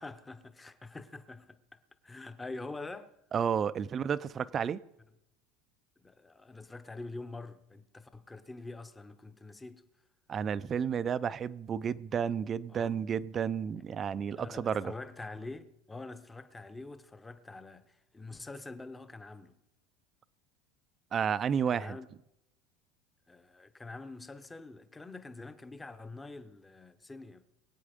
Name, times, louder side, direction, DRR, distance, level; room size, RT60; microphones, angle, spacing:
voice 1, 0.0-3.1 6.0-9.8 12.7-13.1 14.4-19.6 21.7-22.1 23.3-27.4, left 3 dB, 10° left, 0.8 m, -45 dB
voice 2, 3.3-4.8 10.3-14.9 21.1-22.0, right 7 dB, 20° right, 0.4 m, -31 dB
23.0 x 8.5 x 5.1 m
supercardioid pair, 165°, 0 cm